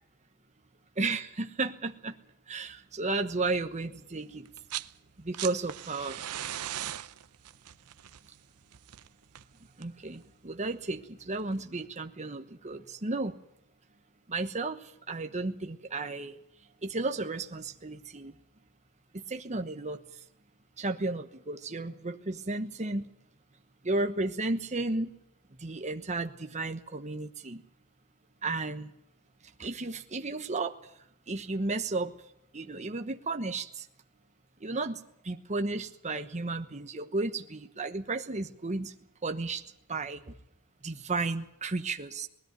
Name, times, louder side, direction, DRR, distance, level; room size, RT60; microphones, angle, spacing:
voice 1, 1.0-2.2 2.5-4.5 5.2-6.2 9.8-13.3 14.3-16.4 16.8-18.3 19.1-20.0 20.8-23.1 23.8-25.1 25.6-27.6 28.4-28.9 29.6-30.8 31.3-32.1 32.5-33.8 34.6-35.0 35.2-38.9 39.2-39.6 39.9-40.4 40.8-42.3, right 3 dB, 30° right, 6 dB, 1.1 m, -33 dB
sound 1, 4.4-4.9 5.2-10.1 11.3-11.4, right 12 dB, 85° right, 0.7 m, -39 dB
20.0 x 14.0 x 9.5 m, 0.79 s
head